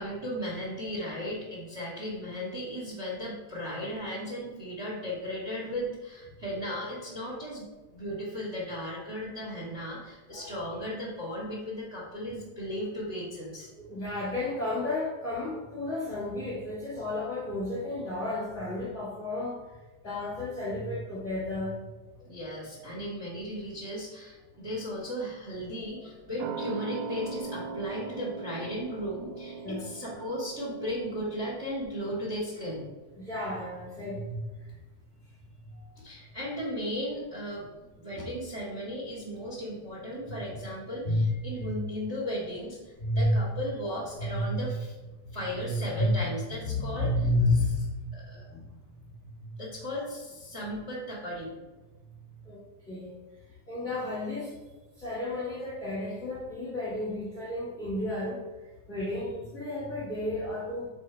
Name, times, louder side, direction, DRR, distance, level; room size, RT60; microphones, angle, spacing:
voice 1, 0.0-7.7 7.9-13.7 22.2-32.8 36.0-37.7 38.0-44.9 45.3-47.1 48.1-48.5 49.6-51.5, equal, 30° right, -6 dB, 1.4 m, -36 dB
voice 2, 13.8-19.6 20.0-21.7 29.6-30.2 33.2-34.4 41.0-41.7 43.0-43.5 44.2-44.7 45.2-46.1 46.6-47.7 48.5-48.6 52.4-52.6 52.9-53.1 53.7-54.6 55.0-58.4 58.9-60.9, left 1 dB, 30° left, -6 dB, 1.4 m, -31 dB
sound 1, 26.4-33.5 33.8-33.9, right 4 dB, 75° right, 2.1 m, -40 dB
5.9 x 4.8 x 4.4 m, 1.2 s
omnidirectional pair, 3.8 m